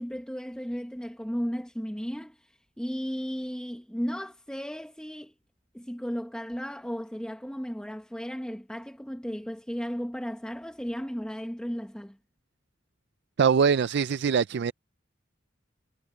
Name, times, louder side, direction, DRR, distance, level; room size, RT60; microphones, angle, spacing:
voice 1, 0.0-2.4 2.8-5.3 5.7-12.2, equal, 5° left, 1.1 m, -35 dB
voice 2, 13.4-14.7, right 6 dB, 60° right, 0.4 m, -23 dB
head